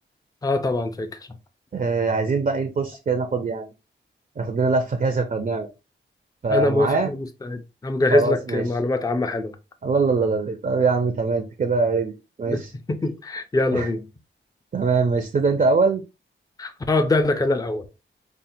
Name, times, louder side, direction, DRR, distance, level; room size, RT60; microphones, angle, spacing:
voice 1, 0.4-1.1 6.5-9.6 12.5-12.6 12.9-14.1 16.6-17.8, left 2 dB, 20° left, 0.5 m, -23 dB
voice 2, 1.7-3.7 4.4-5.7 6.4-7.1 8.1-8.6 9.8-12.7 13.7-13.9 14.7-16.0, right 4 dB, 45° right, 0.5 m, -22 dB
5.5 x 2.2 x 2.6 m
wide cardioid pair, 135°, 20 cm